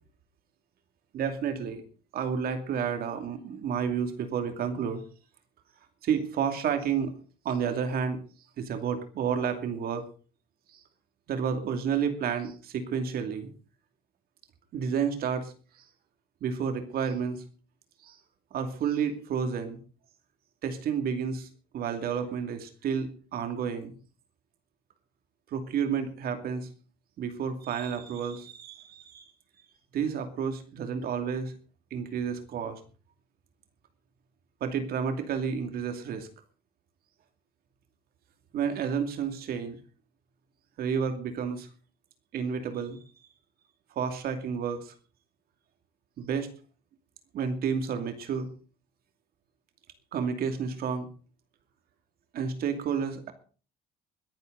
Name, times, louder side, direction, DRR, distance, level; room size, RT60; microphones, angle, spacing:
voice 1, 1.1-1.8 2.1-5.0 6.0-7.1 7.4-8.2 8.6-10.0 10.7-10.8 11.3-13.5 14.7-15.9 16.4-17.4 18.0-18.2 18.5-19.8 20.6-21.5 21.7-23.9 25.5-26.7 27.2-29.3 29.9-31.5 31.9-32.8 34.6-36.3 38.5-39.8 40.8-41.7 42.3-43.0 43.9-44.9 46.2-46.5 47.3-48.5 50.1-51.1 52.3-53.3, right 7 dB, 65° right, 7 dB, 2.6 m, -30 dB
21.5 x 10.5 x 4.0 m, 0.38 s
cardioid pair, 110°, 17 cm